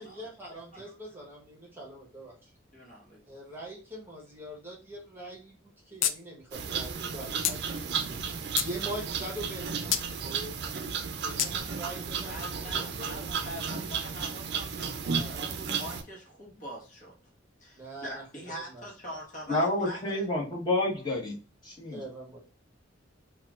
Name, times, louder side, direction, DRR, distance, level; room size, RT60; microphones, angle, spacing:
voice 1, 0.0-2.5 3.3-8.2 8.6-10.0 10.2-10.6 11.2-13.5 15.1-15.4 17.8-18.2 18.7-18.9 21.9-22.4, right 1 dB, 10° right, -3 dB, 1.0 m, -43 dB
voice 2, 0.5-1.0 2.7-3.4 12.0-17.2 17.6-20.3, equal, 45° left, -1 dB, 1.2 m, -44 dB
sound 1, 6.0-6.2 6.5-6.6 7.4-7.6 8.2-8.7 9.9-10.1 11.4-11.5, left 10 dB, 80° left, 0.4 m, -27 dB
sound 2, 6.5-16.0, right 6 dB, 60° right, 0.5 m, -34 dB
voice 3, 19.5-21.4 21.6-22.0, left 2 dB, 25° left, -3 dB, 1.2 m, -29 dB
4.3 x 2.4 x 2.4 m, 0.36 s
head